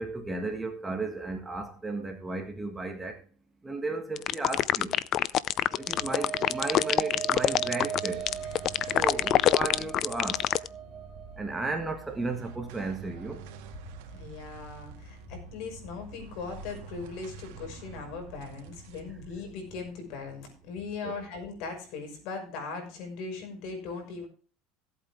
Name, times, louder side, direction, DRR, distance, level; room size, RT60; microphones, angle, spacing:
voice 1, 0.0-3.2 3.6-5.0 5.8-8.3 8.9-10.5 11.4-13.5 21.0-21.2, right 3 dB, 10° right, 1.7 m, -34 dB
sound 1, 4.2-10.7, left 12 dB, 40° left, 0.5 m, -25 dB
sound 2, 5.4-14.0, right 8 dB, 35° right, 4.5 m, -39 dB
sound 3, 7.2-21.8, right 5 dB, 75° right, 2.0 m, -48 dB
voice 2, 8.4-8.9 14.1-24.3, left 4 dB, 60° left, 5.9 m, -39 dB
16.0 x 8.4 x 3.6 m
supercardioid pair, 145°, 0 cm